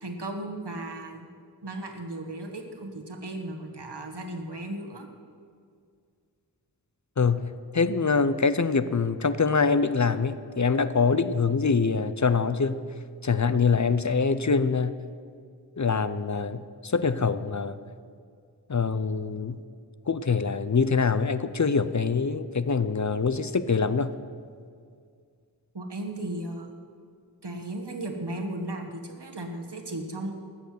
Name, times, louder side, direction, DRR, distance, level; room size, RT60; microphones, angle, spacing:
voice 1, 0.0-1.3 1.6-5.1 25.7-26.7 27.4-30.4, right 1 dB, 75° right, 3 dB, 1.6 m, -35 dB
voice 2, 7.2-12.8 13.2-15.0 15.8-17.8 18.7-19.6 20.1-24.1, left 5 dB, 45° left, 13 dB, 0.6 m, -24 dB
13.5 x 6.8 x 9.4 m, 2.2 s
wide cardioid pair, 45°, 41 cm